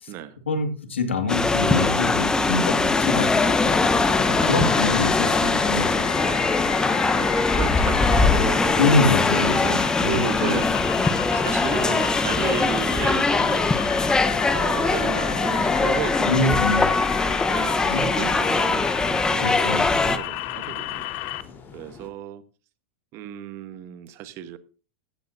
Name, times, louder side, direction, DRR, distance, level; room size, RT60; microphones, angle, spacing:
voice 1, 0.5-3.4 4.2-6.3 8.8-10.6 16.3-16.9 17.9-18.0 19.4-20.1, left 3 dB, 90° left, 2.2 m, -25 dB
sound 1, 1.3-20.2, left 3 dB, 10° left, 1.1 m, -22 dB
sound 2, 2.6-22.1, left 5 dB, 30° left, 4.0 m, -42 dB
sound 3, 2.7-21.4, left 18 dB, 55° left, 0.9 m, -32 dB
voice 2, 3.9-4.5 6.2-6.6 7.1-10.7 11.3-13.7 14.5-16.6 17.5-21.0 21.7-22.4 23.1-24.6, right 10 dB, 45° right, 1.4 m, -34 dB
16.0 x 13.0 x 2.8 m
hypercardioid pair, 100°, 6 cm